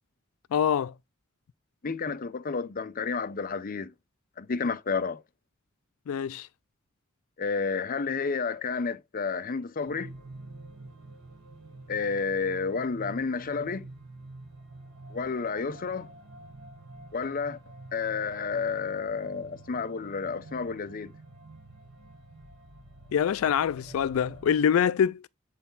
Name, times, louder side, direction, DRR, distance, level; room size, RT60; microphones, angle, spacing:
voice 1, 0.5-0.9 6.1-6.5 23.1-25.2, left 8 dB, 90° left, 0.3 m, -25 dB
voice 2, 1.8-3.9 4.4-5.2 7.4-10.1 11.9-13.8 15.1-16.1 17.1-17.6 17.9-21.1, left 5 dB, 45° left, 0.6 m, -31 dB
sound 1, 9.8-24.6, right 2 dB, 85° right, 3.4 m, -48 dB
8.1 x 4.1 x 3.9 m
head